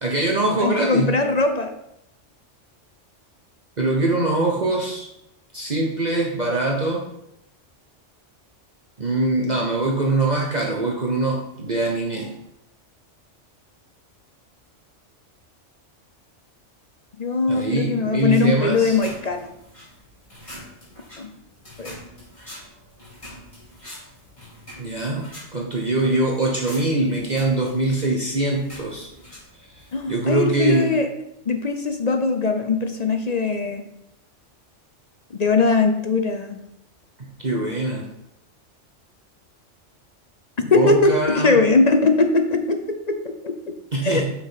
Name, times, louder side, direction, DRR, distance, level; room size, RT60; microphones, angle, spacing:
voice 1, 0.0-1.2 3.8-5.1 5.5-7.0 9.0-12.3 17.5-19.0 24.8-29.1 30.1-30.9 37.4-38.1 40.6-41.5 43.9-44.3, right 2 dB, 35° right, -1 dB, 1.1 m, -23 dB
voice 2, 0.6-1.7 17.2-19.5 21.2-21.3 21.8-21.9 29.9-31.1 31.5-33.8 35.3-36.6 40.7-43.0 43.2-43.5 44.0-44.2, left 3 dB, 40° left, 6 dB, 0.6 m, -20 dB
sound 1, 18.7-30.2, left 1 dB, 25° left, 3.6 m, -44 dB
6.5 x 6.2 x 5.7 m, 0.80 s
omnidirectional pair, 1.3 m